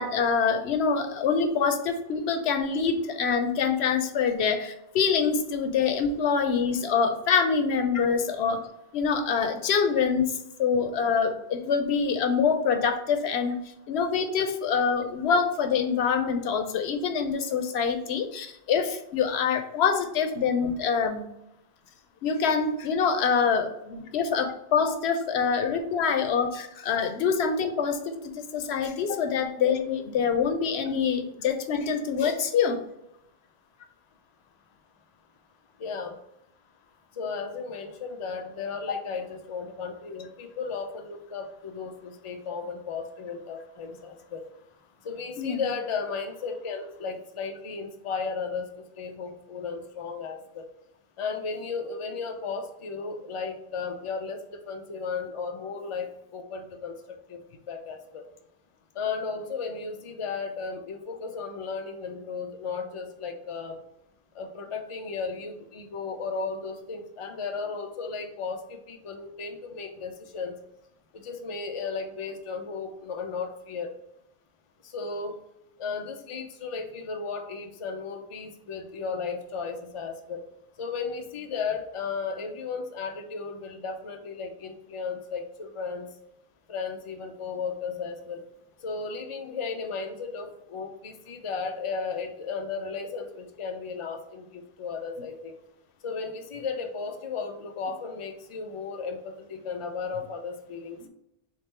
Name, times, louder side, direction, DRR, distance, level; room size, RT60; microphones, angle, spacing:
voice 1, 0.0-8.7 8.9-10.3 10.6-21.3 22.2-32.8 45.4-45.7, left 6 dB, 90° left, 7 dB, 0.9 m, -25 dB
voice 2, 35.8-36.1 37.2-44.4 45.0-50.7 51.2-57.4 57.7-58.2 58.9-63.8 64.3-70.5 71.1-73.9 74.8-75.4 75.8-80.4 80.8-86.1 86.7-88.4 88.8-95.6 96.0-101.1, left 5 dB, 40° left, 4 dB, 0.5 m, -35 dB
3.7 x 3.3 x 4.2 m, 0.82 s
omnidirectional pair, 1.1 m